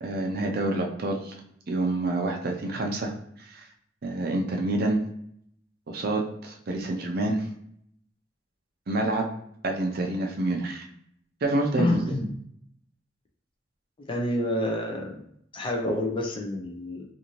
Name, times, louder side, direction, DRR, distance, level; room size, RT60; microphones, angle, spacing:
voice 1, 0.0-1.3 1.7-3.1 3.4-3.7 4.0-5.0 5.9-7.4 8.9-9.3 9.6-10.9 11.4-12.0, right 2 dB, 55° right, 2 dB, 0.5 m, -27 dB
voice 2, 11.8-12.3 14.1-15.1 15.5-17.1, left 1 dB, 30° left, 2 dB, 0.4 m, -28 dB
2.6 x 2.5 x 2.9 m, 0.70 s
head